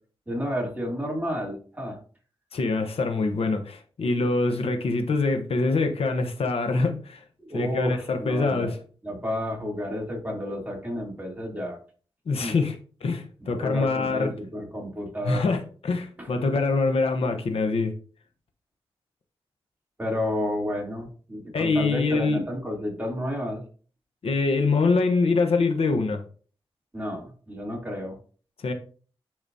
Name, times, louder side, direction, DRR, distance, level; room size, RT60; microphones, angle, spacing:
voice 1, 0.3-2.0 7.4-8.7 9.0-11.8 12.4-12.5 13.4-15.6 16.2-16.3 20.0-23.6 26.9-28.2, left 1 dB, 15° right, -1 dB, 3.1 m, -31 dB
voice 2, 2.5-7.2 7.5-8.8 12.3-12.8 13.0-14.3 15.2-17.9 21.5-22.4 24.2-26.2 28.6-28.7, left 3 dB, 75° left, 6 dB, 1.0 m, -24 dB
10.5 x 4.9 x 2.7 m, 0.41 s
cardioid pair, 70°, 10 cm